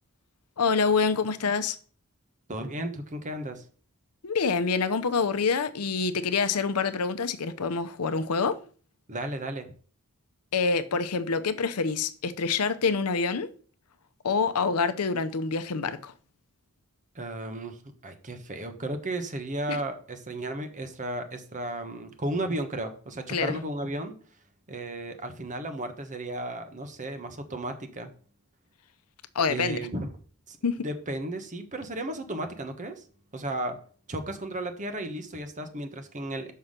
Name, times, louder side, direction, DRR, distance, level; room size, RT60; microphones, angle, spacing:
voice 1, 0.6-1.8 4.2-8.6 10.5-13.5 14.2-16.1 19.7-19.8 23.3-23.6 29.3-29.8 30.6-30.8, left 5 dB, 80° left, 0.7 m, -26 dB
voice 2, 2.5-3.6 9.1-9.7 17.1-24.1 24.7-28.1 29.5-30.1 30.5-30.6 30.8-33.0 33.3-33.8 34.1-36.5, right 1 dB, 35° right, 1.1 m, -34 dB
5.9 x 5.6 x 6.5 m
head